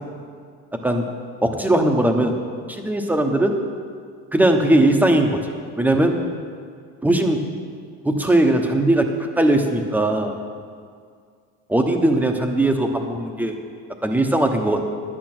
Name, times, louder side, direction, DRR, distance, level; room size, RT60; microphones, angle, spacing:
voice 1, 1.4-2.3 2.7-3.6 4.3-5.4 5.8-6.2 7.0-7.4 8.0-9.1 9.4-10.4 11.7-13.5 14.0-14.8, right 1 dB, 5° right, 4 dB, 1.0 m, -19 dB
10.5 x 8.7 x 6.1 m, 2.1 s
cardioid pair, 120°, 29 cm